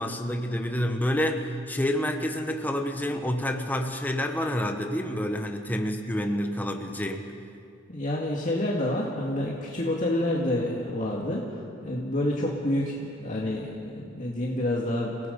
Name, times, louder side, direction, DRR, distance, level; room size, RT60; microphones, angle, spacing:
voice 1, 0.0-7.3, left 1 dB, 10° left, 4 dB, 1.3 m, -28 dB
voice 2, 7.9-15.1, left 1 dB, 40° left, -3 dB, 2.1 m, -28 dB
29.0 x 17.5 x 5.4 m, 2.3 s
head